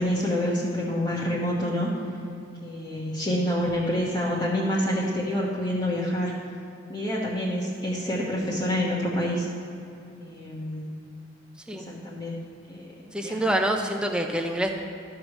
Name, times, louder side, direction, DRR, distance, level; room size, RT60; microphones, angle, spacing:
voice 1, 0.0-1.9 2.6-6.3 6.9-9.5 10.2-10.9 11.7-12.4 12.7-12.8 13.2-13.5, equal, 20° left, -6 dB, 1.2 m, -27 dB
voice 2, 13.1-14.7, right 1 dB, 5° right, 3 dB, 0.7 m, -26 dB
12.5 x 4.8 x 6.4 m, 2.7 s
head